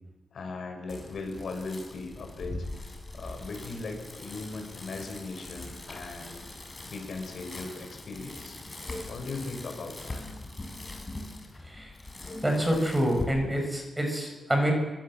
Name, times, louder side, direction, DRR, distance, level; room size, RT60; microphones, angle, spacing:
voice 1, 0.3-2.6 3.1-6.6 6.8-8.6 9.0-10.2, left 3 dB, 60° left, 4 dB, 6.3 m, -38 dB
Bicycle, 0.9-13.2, left 2 dB, 20° left, 5.1 m, -42 dB
voice 2, 12.4-14.7, equal, 10° right, 2 dB, 6.2 m, -27 dB
25.5 x 25.0 x 7.6 m, 1.2 s
wide cardioid pair, 140°, 0 cm